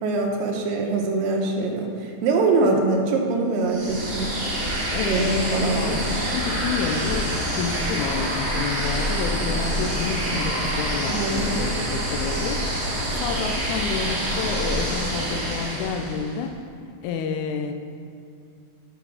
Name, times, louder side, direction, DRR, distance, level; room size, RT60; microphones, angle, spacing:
voice 1, 0.0-4.3 5.1-6.0 11.1-11.7, right 3 dB, 90° right, 1 dB, 2.5 m, -23 dB
sound 1, 3.6-16.4, right 1 dB, 45° right, 0.7 m, -26 dB
voice 2, 4.9-16.6 17.0-17.7, left 6 dB, 80° left, 6 dB, 1.8 m, -29 dB
6.9 x 6.3 x 5.7 m, 2.3 s
omnidirectional pair, 3.9 m